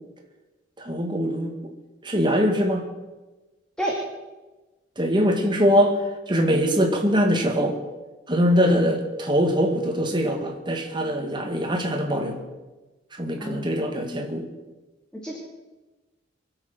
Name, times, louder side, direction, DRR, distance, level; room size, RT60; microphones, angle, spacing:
voice 1, 0.8-1.5 2.0-2.9 5.0-7.8 8.3-12.4 13.2-14.5, equal, 25° right, 2 dB, 2.2 m, -22 dB
voice 2, 13.4-14.2 15.1-15.4, right 1 dB, 5° left, -2 dB, 2.3 m, -31 dB
24.0 x 8.0 x 6.2 m, 1.2 s
head